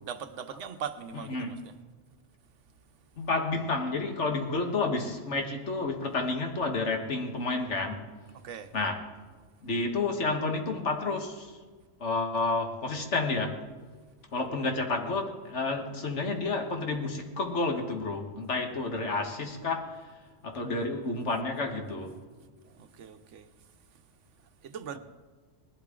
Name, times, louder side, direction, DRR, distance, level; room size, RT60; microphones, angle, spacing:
voice 1, 0.0-1.8 8.3-8.7 22.6-23.5 23.9-24.0 24.6-25.0, right 7 dB, 85° right, 1.1 m, -40 dB
voice 2, 3.2-8.0 8.7-9.0 9.6-11.6 12.0-13.6 14.3-20.0 20.4-22.2, left 3 dB, 75° left, 1.8 m, -30 dB
19.5 x 12.0 x 3.8 m
omnidirectional pair, 1.2 m